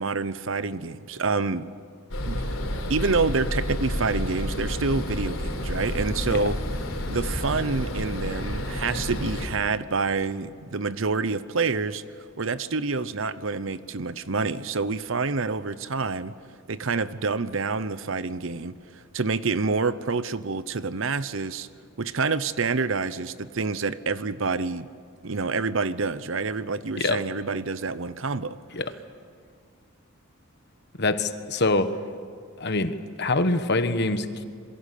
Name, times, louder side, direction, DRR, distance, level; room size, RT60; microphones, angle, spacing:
voice 1, 0.0-1.7 2.2-6.6 7.1-12.0 12.4-16.4 16.7-21.7 22.0-24.9 25.2-28.6, right 4 dB, 65° right, 0.8 m, -27 dB
sound 1, 2.1-9.5, left 1 dB, 70° left, 4.1 m, -30 dB
voice 2, 31.0-32.0 32.6-34.5, left 2 dB, 50° left, 1.3 m, -25 dB
27.5 x 23.0 x 8.5 m
head